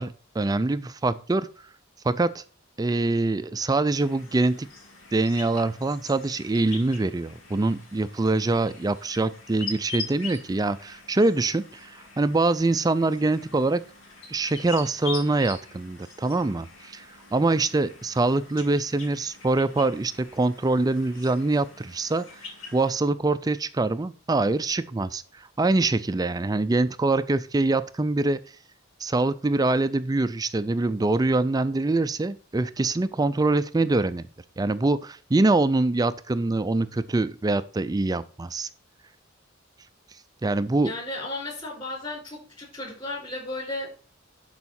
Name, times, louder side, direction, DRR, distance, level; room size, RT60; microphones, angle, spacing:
voice 1, 0.0-1.5 2.0-2.4 2.8-4.7 5.1-13.8 14.3-17.1 17.3-22.4 22.7-28.4 29.0-34.3 34.6-38.7 40.4-40.9, right 2 dB, 20° right, 14 dB, 0.4 m, -24 dB
sound 1, 3.9-22.9, left 4 dB, 90° left, 2.7 m, -43 dB
voice 2, 40.8-43.9, left 2 dB, 25° left, -1 dB, 4.9 m, -34 dB
11.0 x 4.9 x 4.2 m, 0.39 s
head